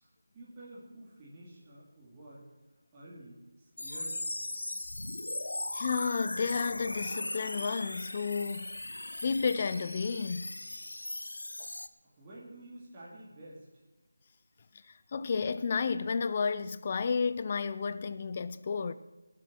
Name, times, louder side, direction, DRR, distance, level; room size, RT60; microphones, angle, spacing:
voice 1, 0.0-2.5 2.9-4.4 11.2-11.3 12.0-13.7, right 1 dB, 20° right, 2.8 m, -50 dB
sound 1, 3.8-11.9, left 2 dB, 85° left, 0.8 m, -38 dB
voice 2, 5.7-8.8 9.2-10.5 11.6-11.7 15.1-18.9, left 5 dB, 30° left, 0.6 m, -32 dB
19.5 x 7.6 x 6.4 m
figure-of-eight pair, 170°, 0 cm